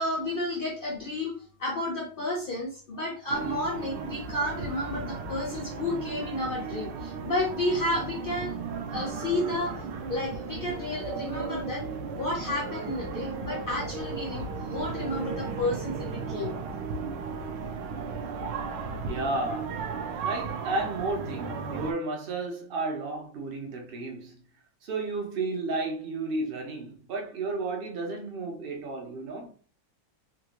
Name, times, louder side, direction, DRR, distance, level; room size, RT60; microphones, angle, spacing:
voice 1, 0.0-1.3 1.6-8.5 8.9-9.7 10.1-11.8 12.1-16.5, left 1 dB, 60° left, 0.5 m, -31 dB
sound 1, 3.3-21.9, right 5 dB, 80° right, 1.3 m, -35 dB
voice 2, 19.0-19.8 20.2-24.4 24.8-29.5, right 3 dB, 55° right, 0.6 m, -33 dB
3.7 x 2.4 x 2.9 m
omnidirectional pair, 1.9 m